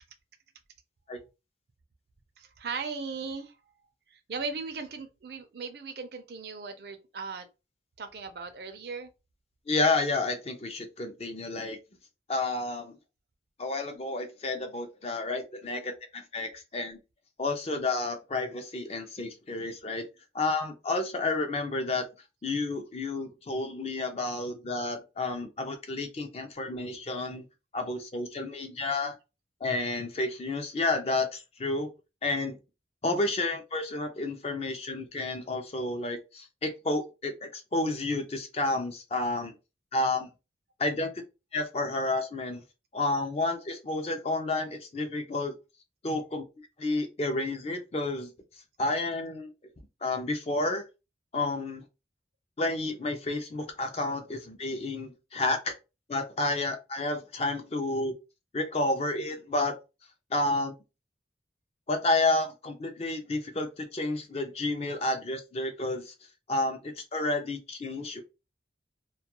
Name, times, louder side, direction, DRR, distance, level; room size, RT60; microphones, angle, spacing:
voice 1, 2.4-3.6 4.1-7.5 8.0-9.1, right 4 dB, 55° right, 0.4 m, -38 dB
voice 2, 9.7-11.8 12.3-13.0 13.6-17.0 17.4-20.1 20.3-22.0 22.4-27.4 27.7-29.1 29.6-31.9 32.2-32.6 33.0-39.5 39.9-40.3 40.8-41.1 41.5-42.6 42.9-45.5 46.0-46.5 46.8-48.3 48.8-49.5 50.0-50.8 51.3-51.8 52.6-55.7 56.1-58.1 58.5-59.8 60.3-60.8 61.9-66.1 66.5-68.2, left 2 dB, 35° left, 0.4 m, -30 dB
2.3 x 2.2 x 2.9 m
head